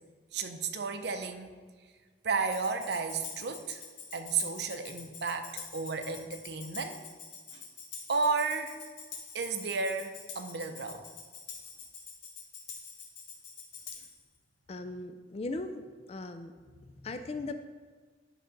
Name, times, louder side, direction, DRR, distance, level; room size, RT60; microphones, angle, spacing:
voice 1, 0.3-1.6 2.2-3.8 4.1-7.0 7.5-7.6 8.1-8.8 9.3-11.0, right 4 dB, 65° right, 7 dB, 0.6 m, -33 dB
Tambourine, 2.5-14.2, left 5 dB, 85° left, 1.4 m, -46 dB
voice 2, 14.7-16.5 16.8-17.5, left 2 dB, 35° left, 7 dB, 0.3 m, -38 dB
10.5 x 3.8 x 5.2 m, 1.5 s
head